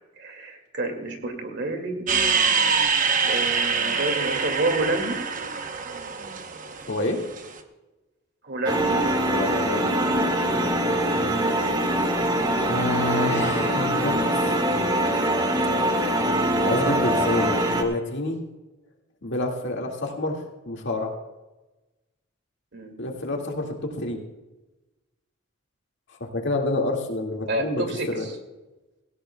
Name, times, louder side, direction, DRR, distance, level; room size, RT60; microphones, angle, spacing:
voice 1, 0.2-2.0 3.3-5.2 8.4-9.0 13.0-13.2 22.7-22.9 27.4-28.3, right 2 dB, 55° right, 5 dB, 2.2 m, -29 dB
sound 1, 2.1-7.5, right 5 dB, 40° right, 0.9 m, -25 dB
voice 2, 6.9-7.2 9.3-9.8 12.7-14.7 16.6-18.4 19.2-20.4 20.6-21.1 23.0-24.2 26.3-28.3, left 2 dB, 60° left, 1 dB, 2.0 m, -28 dB
sound 2, 8.7-17.8, right 1 dB, 20° right, 1.6 m, -23 dB
18.0 x 16.5 x 2.3 m, 1.1 s
head